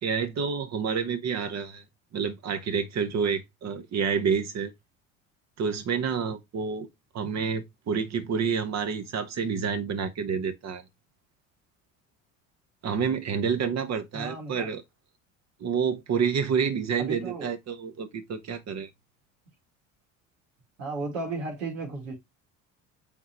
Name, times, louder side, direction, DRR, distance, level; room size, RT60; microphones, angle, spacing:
voice 1, 0.0-1.8 2.1-4.7 5.6-6.9 7.1-10.8 12.8-14.8 15.6-18.9, right 6 dB, 45° right, 1.3 m, -28 dB
voice 2, 14.1-14.7 17.0-17.5 20.8-22.1, right 3 dB, 85° right, 2.9 m, -34 dB
7.7 x 4.1 x 3.0 m
hypercardioid pair, 70°, 39 cm